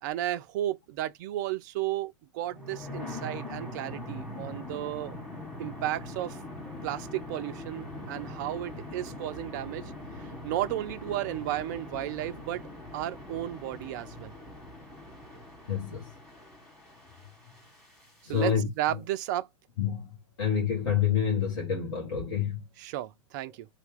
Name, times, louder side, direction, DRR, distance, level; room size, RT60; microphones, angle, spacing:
voice 1, 0.0-5.2 5.6-6.4 6.8-9.9 10.2-12.6 12.9-14.3 18.3-19.5 22.8-23.7, right 13 dB, 40° right, 0.3 m, -33 dB
sound 1, 2.5-18.4, left 1 dB, 5° left, 1.6 m, -42 dB
voice 2, 15.7-16.1 18.2-18.7 19.8-20.0 20.4-22.6, left 7 dB, 50° left, 1.0 m, -27 dB
2.8 x 2.3 x 3.5 m
figure-of-eight pair, 100°, 16 cm